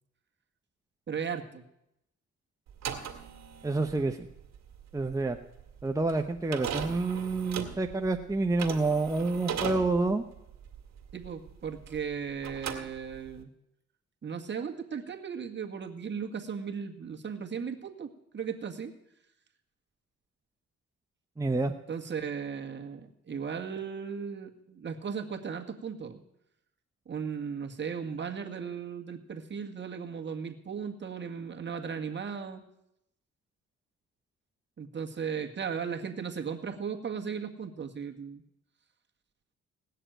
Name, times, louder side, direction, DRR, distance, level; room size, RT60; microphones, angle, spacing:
voice 1, 1.1-1.6 11.1-13.5 14.2-18.9 21.9-26.2 27.1-32.6 34.8-38.4, right 6 dB, 35° right, 3 dB, 1.8 m, -36 dB
sound 1, 2.7-12.1 12.4-13.4, right 8 dB, 65° right, 2.0 m, -38 dB
voice 2, 3.6-4.3 4.9-5.4 5.8-10.2 21.4-21.7, right 3 dB, 10° right, 5 dB, 0.8 m, -28 dB
17.5 x 6.7 x 9.1 m, 0.83 s
cardioid pair, 90°, 30 cm